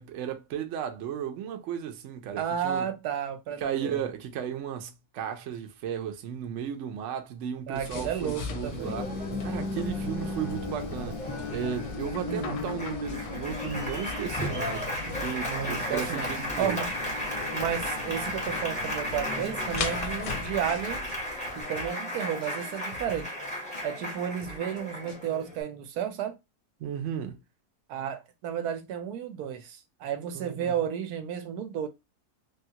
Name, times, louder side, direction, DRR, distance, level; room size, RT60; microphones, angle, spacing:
voice 1, 0.0-2.9 3.6-9.1 9.4-16.8 26.8-27.4 30.3-30.7, right 8 dB, 65° right, 0.8 m, -35 dB
voice 2, 2.4-4.0 7.7-9.1 12.2-12.7 15.4-16.3 16.6-16.9 17.5-21.1 21.6-23.3 23.8-26.4 27.9-31.9, right 9 dB, 85° right, 1.1 m, -32 dB
sound 1, 7.7-21.6, left 5 dB, 85° left, 1.1 m, -38 dB
Applause, 8.6-25.6, left 1 dB, 5° left, 0.8 m, -34 dB
sound 2, 13.1-13.5 13.7-14.1 14.4-14.5 14.8-15.5 15.7-16.1 16.4-16.8 17.1-18.8 19.1-19.5 19.7-20.8 21.1-21.5 21.7-22.1 22.4-22.5 22.8-23.5 23.7-24.1 24.4-24.8 25.1-25.2, left 2 dB, 65° left, 0.5 m, -47 dB
3.4 x 2.3 x 2.8 m
omnidirectional pair, 1.6 m